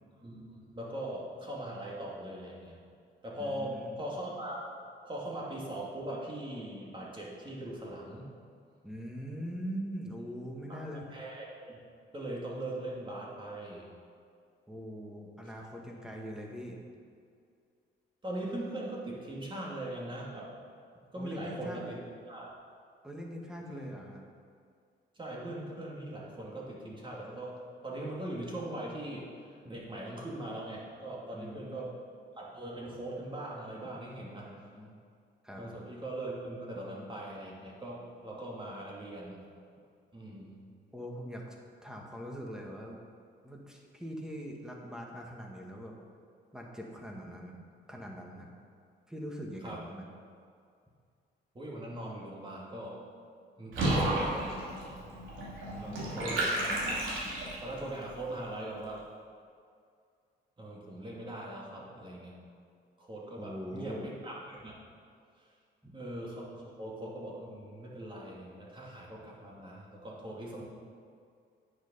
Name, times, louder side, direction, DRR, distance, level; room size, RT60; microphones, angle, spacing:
voice 1, 0.2-2.8 3.2-4.7 5.0-8.2 10.7-10.8 11.1-11.8 12.1-13.9 18.2-20.5 21.1-22.0 22.3-22.5 23.6-23.9 25.1-31.9 32.3-34.7 35.6-39.4 40.1-40.6 49.6-49.8 51.5-53.0 53.6-54.8 55.7-57.0 57.6-59.0 60.6-62.4 63.0-64.7 65.4-65.5 65.9-70.6, right 1 dB, 25° right, -4 dB, 2.7 m, -41 dB
voice 2, 3.4-4.0 8.8-11.1 14.7-16.8 21.1-21.8 23.0-24.2 31.3-31.9 34.3-35.0 35.4-35.7 40.9-41.6 41.8-43.0 43.4-46.0 46.5-47.6 47.9-48.5 49.1-50.1 55.7-56.4 63.4-64.1 65.8-65.9, equal, 5° right, -1 dB, 1.8 m, -42 dB
Water / Bathtub (filling or washing), 53.7-57.8, right 1 dB, 80° right, 2.7 m, -32 dB
9.5 x 6.7 x 5.6 m, 2.2 s
cardioid pair, 90°, 20 cm